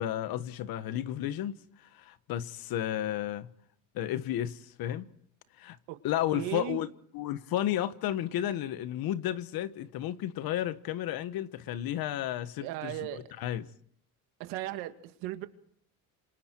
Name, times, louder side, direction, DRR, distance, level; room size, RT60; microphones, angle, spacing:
voice 1, 0.0-1.6 1.9-3.5 3.9-5.1 5.6-5.8 6.0-6.9 7.1-13.7, left 12 dB, 65° left, 1.4 m, -32 dB
voice 2, 6.3-6.8 12.6-13.2 14.4-15.5, right 15 dB, 90° right, 2.2 m, -36 dB
27.5 x 26.5 x 4.6 m
supercardioid pair, 95°, 38 cm